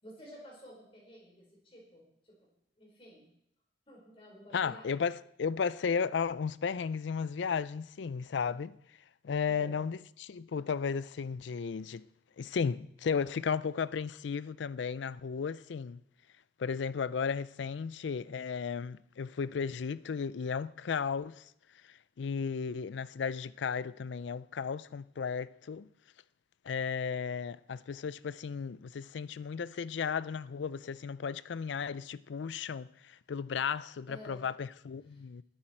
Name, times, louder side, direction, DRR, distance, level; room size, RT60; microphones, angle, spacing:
voice 1, 0.0-2.5 2.8-3.3 3.9-5.1 9.5-9.8 34.1-34.4 35.1-35.2, equal, 30° left, 4.6 m, -51 dB
voice 2, 4.5-8.8 9.2-12.0 12.4-16.0 16.6-21.4 22.2-25.9 26.7-35.4, left 6 dB, 80° left, 0.4 m, -34 dB
19.5 x 8.8 x 4.5 m
head